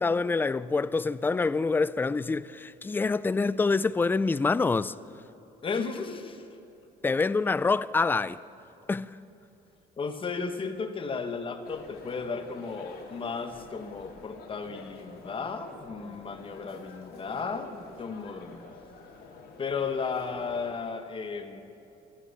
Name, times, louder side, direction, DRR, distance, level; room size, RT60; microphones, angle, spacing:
voice 1, 0.0-4.9 7.0-8.4 8.9-9.1, left 4 dB, 10° left, 0.3 m, -26 dB
voice 2, 5.6-6.4 10.0-18.6 19.6-21.6, left 5 dB, 30° left, 1.2 m, -34 dB
sound 1, 11.6-20.7, left 4 dB, 65° left, 2.2 m, -48 dB
14.0 x 13.5 x 7.0 m
cardioid pair, 110°, 17 cm